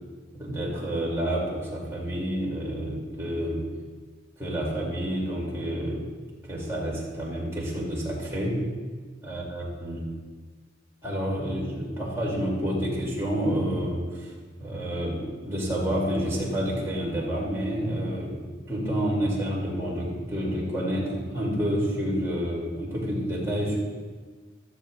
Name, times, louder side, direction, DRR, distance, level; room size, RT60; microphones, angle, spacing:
voice 1, 0.3-3.6 4.4-6.0 6.5-8.6 9.2-10.0 11.0-14.3 14.6-23.8, equal, 15° right, -6 dB, 2.9 m, -29 dB
14.0 x 12.5 x 2.5 m, 1.5 s
head